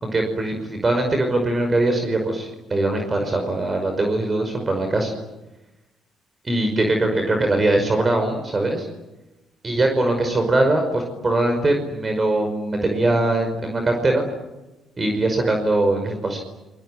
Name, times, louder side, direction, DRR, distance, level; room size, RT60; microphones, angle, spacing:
voice 1, 0.0-5.1 6.5-8.9 9.6-14.2 15.0-16.4, right 2 dB, 30° right, 4 dB, 5.5 m, -21 dB
28.0 x 22.5 x 9.3 m, 1.0 s
cardioid pair, 85°, 0 cm